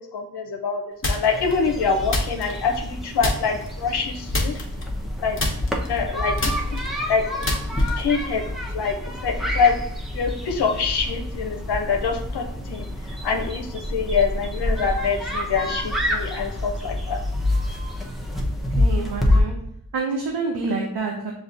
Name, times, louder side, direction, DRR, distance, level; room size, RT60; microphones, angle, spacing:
voice 1, 0.0-4.5 5.2-5.4 5.9-6.4 6.7-8.4 8.7-8.9 9.2-9.7 10.1-12.9 13.2-17.2, left 5 dB, 85° left, 3 dB, 0.6 m, -25 dB
sound 1, 1.0-1.5 2.1-2.9 3.2-3.7 4.3-5.1 5.4-8.2, left 1 dB, 30° left, 1.0 m, -27 dB
sound 2, 1.3-19.4, left 1 dB, ahead, 0.8 m, -27 dB
voice 2, 18.7-19.6 19.9-21.3, right 4 dB, 85° right, 0 dB, 0.7 m, -27 dB
7.0 x 2.7 x 2.5 m, 0.71 s
cardioid pair, 45°, 39 cm